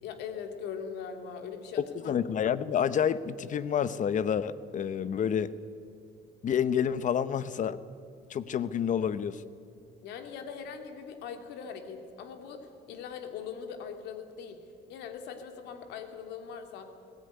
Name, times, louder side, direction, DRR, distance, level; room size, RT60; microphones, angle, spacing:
voice 1, 0.0-2.1 10.0-17.1, left 6 dB, 85° left, 6 dB, 2.5 m, -41 dB
voice 2, 2.0-5.5 6.4-7.8 8.3-9.4, left 8 dB, 50° left, 15 dB, 0.9 m, -28 dB
20.5 x 16.5 x 9.8 m, 2.4 s
cardioid pair, 110°, 17 cm